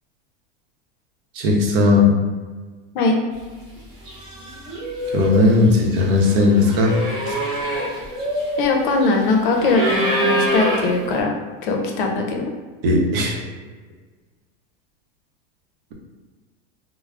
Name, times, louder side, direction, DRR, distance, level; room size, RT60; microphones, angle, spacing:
voice 1, 1.3-2.1 5.1-7.0 7.3-7.4 12.8-13.4, left 2 dB, 70° right, -1 dB, 0.7 m, -16 dB
sound 1, 3.6-3.8 4.1-11.2, equal, 15° right, 0.4 m, -25 dB
voice 2, 8.6-11.3 11.6-12.4, left 3 dB, 60° left, 2 dB, 0.5 m, -20 dB
3.4 x 2.0 x 2.3 m, 1.4 s
supercardioid pair, 165°, 29 cm